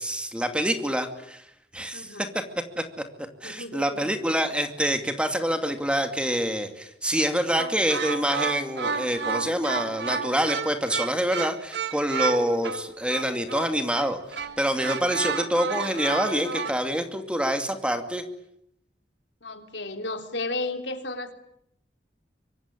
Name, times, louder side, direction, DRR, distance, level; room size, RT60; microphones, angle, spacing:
voice 1, 0.0-1.4 1.7-2.3 2.8-3.0 3.4-18.2, equal, 5° right, 7 dB, 2.5 m, -26 dB
voice 2, 1.9-2.2 3.4-4.1 19.4-21.3, left 2 dB, 90° left, 6 dB, 3.6 m, -33 dB
sound 1, 7.6-16.7, right 5 dB, 70° right, 1.8 m, -31 dB
24.5 x 24.5 x 9.8 m, 0.75 s
head